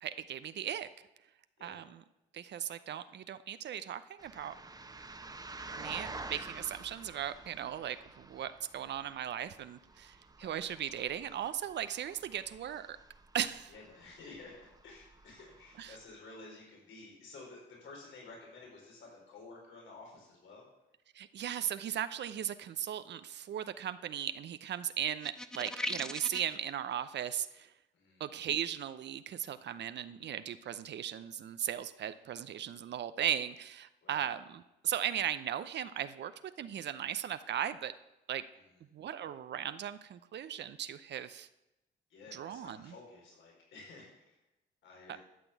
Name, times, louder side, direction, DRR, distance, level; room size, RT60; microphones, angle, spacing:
voice 1, 0.0-0.9 1.6-2.0 2.3-4.5 5.8-13.0 13.3-13.7 15.8-16.0 21.1-27.7 28.2-36.3 36.6-37.9 38.3-38.4 38.9-41.5 42.3-42.9, right 10 dB, 60° right, 12 dB, 0.7 m, -37 dB
sound 1, 4.2-16.0, right 3 dB, 20° right, 1.1 m, -50 dB
voice 2, 13.7-14.6 14.8-20.6 27.9-28.2 34.0-34.3 42.1-44.4 44.8-45.2, left 3 dB, 75° left, -2 dB, 4.8 m, -52 dB
sound 2, 25.2-26.6, left 1 dB, 5° left, 0.7 m, -38 dB
12.5 x 6.1 x 8.4 m, 0.94 s
cardioid pair, 90°, 20 cm